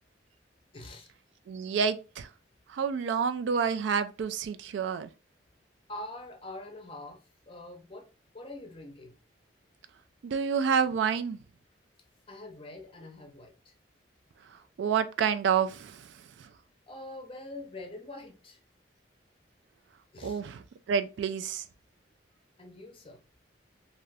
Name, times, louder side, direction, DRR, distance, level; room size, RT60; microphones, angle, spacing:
voice 1, 0.7-1.1 5.9-8.1 8.3-9.2 12.3-13.7 16.9-18.6 20.1-20.4 22.6-23.2, left 2 dB, 30° left, 0.6 m, -44 dB
voice 2, 1.5-2.3 2.7-5.1 10.2-11.4 14.8-16.1 16.4-16.5 20.2-21.6, right 6 dB, 75° right, 0.3 m, -29 dB
2.6 x 2.4 x 3.2 m
head